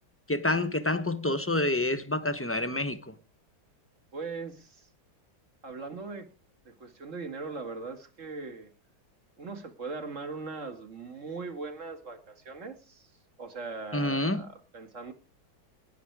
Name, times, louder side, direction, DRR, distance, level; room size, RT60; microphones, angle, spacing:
voice 1, 0.3-3.1 13.9-14.4, left 2 dB, 20° left, 0.3 m, -28 dB
voice 2, 4.1-4.9 5.6-6.3 6.7-8.7 9.4-13.1 13.4-15.1, right 4 dB, 35° right, 2.4 m, -40 dB
19.0 x 11.5 x 4.8 m
omnidirectional pair, 2.3 m